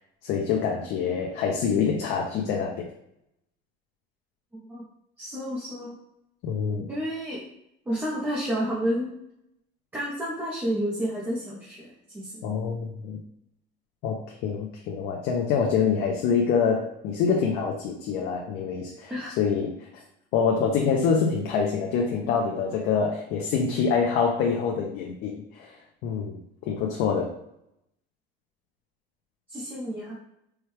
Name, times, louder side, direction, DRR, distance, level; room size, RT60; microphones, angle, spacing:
voice 1, 0.2-2.9 6.4-6.9 12.4-13.2 14.0-19.8 20.3-25.8 26.0-26.4 26.7-27.3, left 6 dB, 55° left, 0 dB, 0.5 m, -26 dB
voice 2, 5.2-5.9 6.9-7.5 7.9-9.2 9.9-11.9 12.1-12.4 19.1-19.3 29.5-30.1, equal, 10° right, -6 dB, 0.6 m, -30 dB
4.4 x 2.2 x 3.2 m, 0.78 s
cardioid pair, 175°, 19 cm